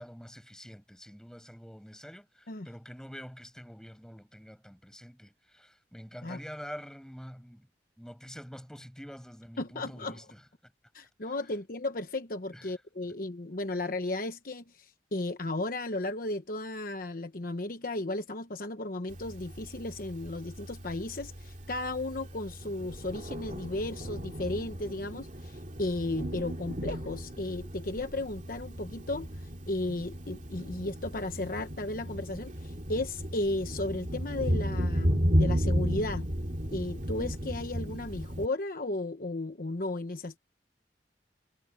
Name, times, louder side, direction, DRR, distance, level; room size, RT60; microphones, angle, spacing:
voice 1, 0.0-7.7 8.0-10.7 12.5-12.8 13.0-13.1 13.7-13.8, equal, 5° left, 5.8 m, -46 dB
voice 2, 9.6-10.2 10.9-36.3 36.7-40.4, left 2 dB, 55° left, 1.1 m, -35 dB
Thunder, 19.1-38.5, equal, 45° right, 2.5 m, -34 dB
head